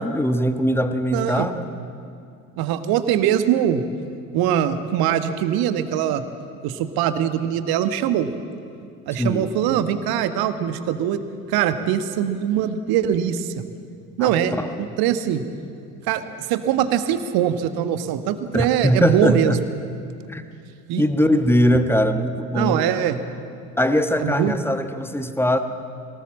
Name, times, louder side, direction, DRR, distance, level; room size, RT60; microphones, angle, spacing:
voice 1, 0.0-1.6 9.2-9.5 14.2-14.8 18.5-19.6 20.3-20.5 21.0-22.8 23.8-25.6, equal, 5° left, 9 dB, 1.3 m, -21 dB
voice 2, 1.1-1.5 2.6-3.8 4.3-6.2 6.6-8.3 9.1-11.2 11.5-13.6 14.2-15.4 16.1-16.2 16.5-19.6 20.9-21.0 22.5-23.2 24.2-24.5, right 10 dB, 50° right, 10 dB, 1.5 m, -22 dB
22.5 x 18.5 x 7.5 m, 2.5 s
figure-of-eight pair, 70°, 48 cm